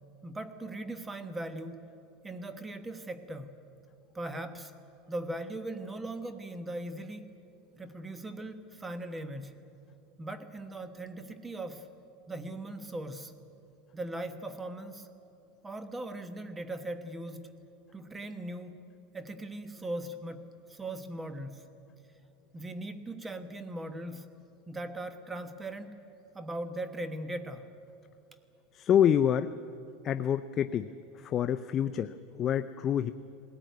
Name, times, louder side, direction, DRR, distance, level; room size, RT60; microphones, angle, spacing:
voice 1, 0.2-1.9 2.2-3.6 4.1-4.7 5.1-7.4 7.8-9.6 10.2-11.9 12.3-13.3 13.9-15.1 15.6-17.5 17.9-18.8 19.1-21.7 22.5-24.3 24.7-26.0 26.3-27.7, right 1 dB, 10° right, 10 dB, 1.2 m, -39 dB
voice 2, 28.7-29.5 30.0-30.9 31.2-33.1, left 9 dB, 30° left, 11 dB, 0.5 m, -27 dB
19.5 x 18.0 x 9.3 m, 2.7 s
supercardioid pair, 145°, 0 cm